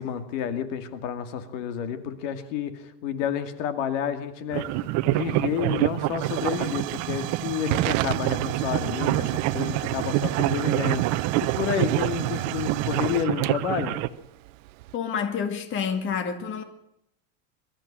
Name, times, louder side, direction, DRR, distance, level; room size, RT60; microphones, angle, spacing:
voice 1, 0.0-4.8 5.1-14.0, left 8 dB, 70° left, 2.4 m, -30 dB
sound 1, 4.5-14.1, right 16 dB, 45° right, 1.0 m, -27 dB
Hiss / Fire / Tick, 4.6-15.0, right 19 dB, 85° right, 0.7 m, -33 dB
voice 2, 14.9-16.6, left 7 dB, 30° left, 2.1 m, -28 dB
23.5 x 13.0 x 8.9 m
supercardioid pair, 155°, 38 cm